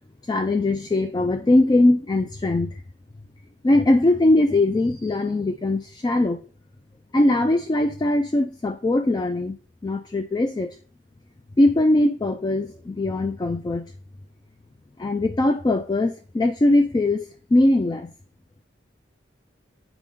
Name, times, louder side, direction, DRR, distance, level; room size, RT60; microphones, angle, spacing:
voice 1, 0.3-2.8 3.6-6.4 7.1-9.6 9.8-10.8 11.6-13.9 15.0-18.1, left 2 dB, 25° left, 0.3 m, -21 dB
7.6 x 4.9 x 3.6 m
head